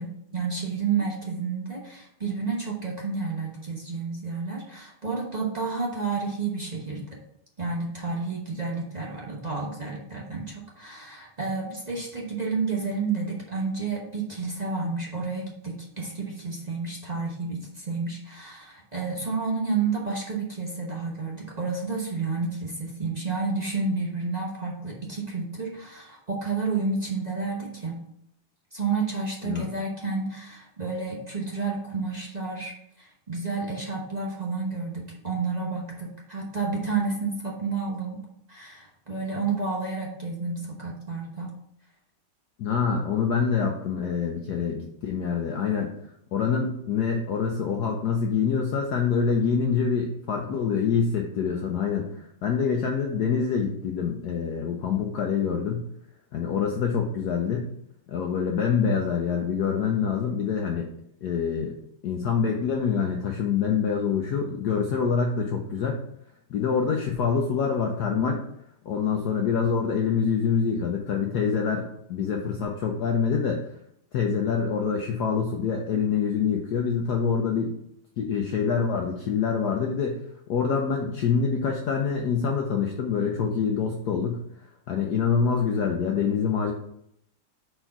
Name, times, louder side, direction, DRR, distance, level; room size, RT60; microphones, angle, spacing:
voice 1, 0.0-7.2 7.6-28.0 28.7-38.2 38.5-41.5, right 4 dB, 40° right, -4 dB, 0.6 m, -30 dB
voice 2, 42.6-45.9 46.3-55.9 56.3-57.7 58.1-60.9 61.2-61.7 62.0-66.0 66.5-68.4 68.8-73.6 74.1-77.8 78.2-80.2 80.5-84.4 84.9-86.7, left 6 dB, 70° left, 2 dB, 1.0 m, -26 dB
4.5 x 4.5 x 5.7 m, 0.74 s
omnidirectional pair, 2.4 m